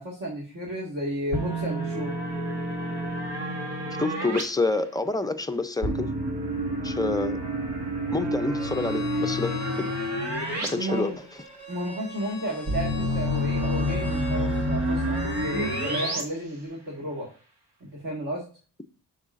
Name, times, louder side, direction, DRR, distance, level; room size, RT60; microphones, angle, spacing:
voice 1, 0.0-2.1 10.7-11.2 11.7-17.3 17.8-18.4, right 1 dB, 50° right, 1.8 m, -33 dB
sound 1, 1.3-4.4 5.8-10.7 11.0-11.1 12.7-16.2, equal, 85° right, 1.8 m, -28 dB
voice 2, 4.0-6.1 6.8-7.4 8.1-9.9 10.6-11.1, left 3 dB, 10° left, 0.4 m, -28 dB
Bowed string instrument, 8.6-16.2, equal, 20° right, 3.3 m, -40 dB
7.8 x 6.4 x 2.5 m
wide cardioid pair, 150°, 40 cm